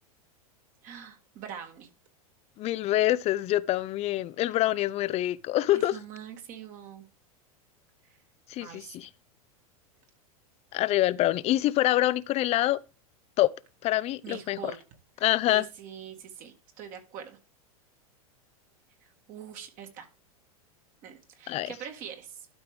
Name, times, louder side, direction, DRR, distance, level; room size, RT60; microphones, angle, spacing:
voice 1, 0.8-1.9 5.7-7.0 8.5-9.1 14.2-14.8 15.5-17.4 19.0-20.1 21.0-22.5, right 8 dB, 45° right, 1.9 m, -43 dB
voice 2, 2.6-6.0 8.5-9.1 10.7-12.8 13.4-13.5 13.8-14.7 15.2-15.6 21.5-21.7, left 15 dB, 35° left, 0.5 m, -26 dB
12.0 x 4.5 x 3.5 m
hypercardioid pair, 95°, 19 cm